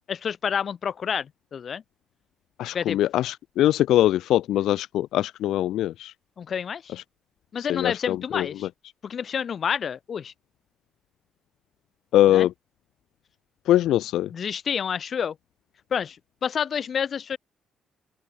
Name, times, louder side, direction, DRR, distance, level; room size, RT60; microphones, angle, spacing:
voice 1, 0.1-1.8 2.7-3.0 6.4-6.9 7.5-8.7 9.0-10.3 12.3-12.5 14.3-15.4 15.9-16.2 16.4-17.4, left 7 dB, 50° left, 6.0 m, -29 dB
voice 2, 2.6-6.1 7.7-8.4 12.1-12.5 13.7-14.3, left 13 dB, 80° left, 0.8 m, -22 dB
open air
cardioid pair, 90°, 0 cm